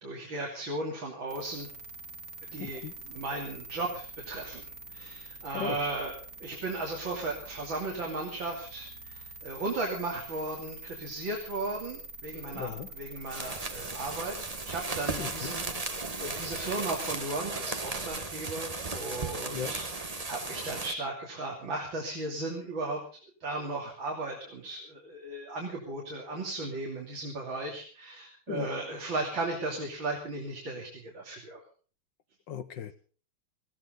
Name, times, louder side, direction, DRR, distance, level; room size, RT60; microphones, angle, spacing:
voice 1, 0.0-1.7 2.5-6.1 6.4-23.0 23.4-31.6, right 2 dB, 65° right, 0 dB, 3.7 m, -36 dB
sound 1, 1.3-17.2, right 2 dB, 45° right, 2.3 m, -46 dB
voice 2, 2.6-2.9 5.5-5.8 12.5-12.9 15.2-15.5 19.5-19.7 28.5-28.7 32.5-32.9, left 8 dB, 65° left, 12 dB, 1.6 m, -36 dB
sound 2, 13.2-20.9, right 3 dB, 25° right, 1.1 m, -36 dB
19.5 x 15.5 x 3.9 m, 0.40 s
omnidirectional pair, 2.3 m